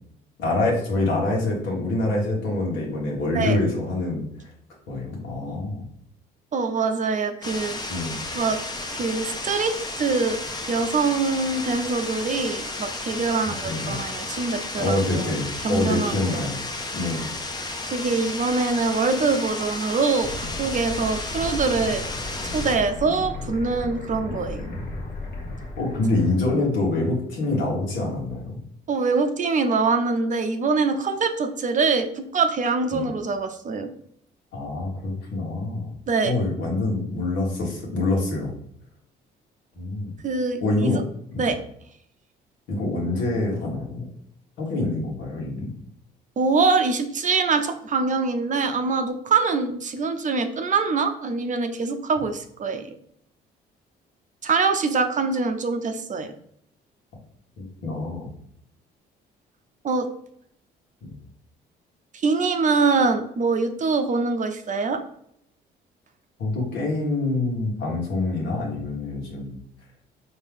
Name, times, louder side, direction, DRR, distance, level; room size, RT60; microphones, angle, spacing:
voice 1, 0.4-4.5 4.9-5.8 7.9-8.2 13.4-14.0 14.8-16.6 16.9-17.2 24.2-24.3 25.8-28.6 32.9-33.0 34.5-35.9 36.2-38.5 39.8-40.1 40.6-41.0 41.3-41.5 42.7-44.0 44.6-45.7 57.8-58.3 61.0-61.1 66.4-69.6, left 2 dB, 80° left, -3 dB, 1.5 m, -26 dB
voice 2, 6.5-7.8 8.3-8.6 8.9-10.4 10.7-15.3 15.6-16.4 17.8-22.0 22.5-24.7 28.9-33.9 36.1-36.4 40.2-41.0 41.4-41.6 46.4-52.9 54.4-56.3 59.8-60.1 62.1-65.0, right 4 dB, 40° right, 6 dB, 0.6 m, -24 dB
sound 1, 7.4-22.8, left 2 dB, 20° left, 0.7 m, -33 dB
sound 2, 20.2-26.6, left 2 dB, 60° left, 1.2 m, -35 dB
4.4 x 2.9 x 3.5 m, 0.71 s
cardioid pair, 80°, 19 cm